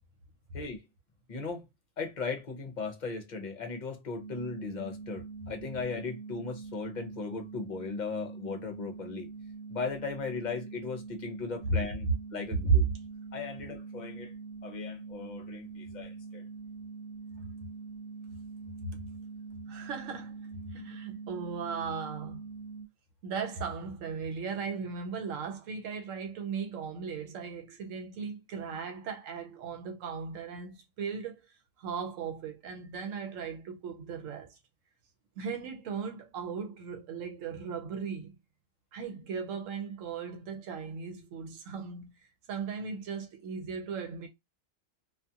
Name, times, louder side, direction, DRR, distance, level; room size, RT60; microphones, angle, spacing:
voice 1, 1.3-1.6 2.0-9.3 9.7-12.8 13.3-14.3 14.6-16.4, left 4 dB, 45° left, 0.7 m, -37 dB
sound 1, 4.2-22.9, right 4 dB, 65° left, 0.3 m, -44 dB
voice 2, 19.7-20.4 20.7-22.5 23.2-31.4 31.8-34.6 35.4-38.3 38.9-42.1 42.5-44.3, right 5 dB, 85° right, 1.0 m, -37 dB
2.4 x 2.4 x 2.7 m
omnidirectional pair, 1.3 m